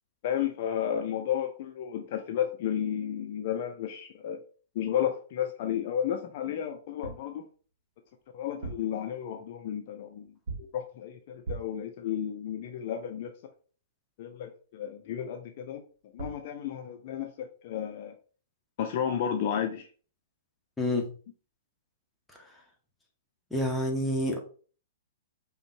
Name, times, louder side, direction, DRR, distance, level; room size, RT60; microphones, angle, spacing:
voice 1, 0.2-4.4 4.7-7.4 8.3-10.3 10.6-13.4 14.2-15.8 16.1-18.1 18.8-19.9, left 9 dB, 45° left, 0.4 m, -32 dB
sound 1, 6.8-7.3 8.4-9.0 10.5-10.8 11.4-11.9 15.9-16.0 16.2-16.5, right 3 dB, 55° right, 0.9 m, -39 dB
voice 2, 20.8-21.1 23.5-24.4, left 1 dB, 5° left, 0.8 m, -28 dB
5.0 x 2.2 x 2.7 m
figure-of-eight pair, 110°, 0 cm